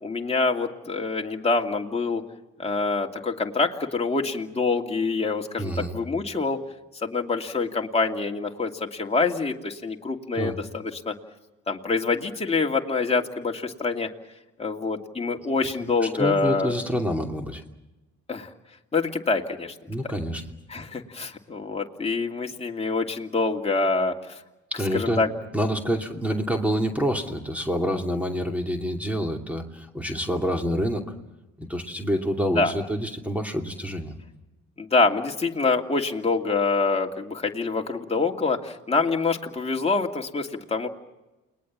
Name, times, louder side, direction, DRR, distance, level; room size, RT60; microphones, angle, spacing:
voice 1, 0.0-2.2 2.6-6.6 7.0-11.1 11.7-14.1 14.6-16.7 18.3-18.5 18.9-19.7 20.7-24.4 24.9-25.3 32.6-32.7 34.8-40.9, left 3 dB, 20° left, 1 dB, 2.5 m, -26 dB
voice 2, 5.6-6.0 10.3-10.6 16.0-17.6 19.9-20.4 24.7-25.2 25.5-31.0 31.6-34.1, equal, 5° right, 3 dB, 2.7 m, -27 dB
29.5 x 20.5 x 7.4 m, 1.0 s
cardioid pair, 90°, 30 cm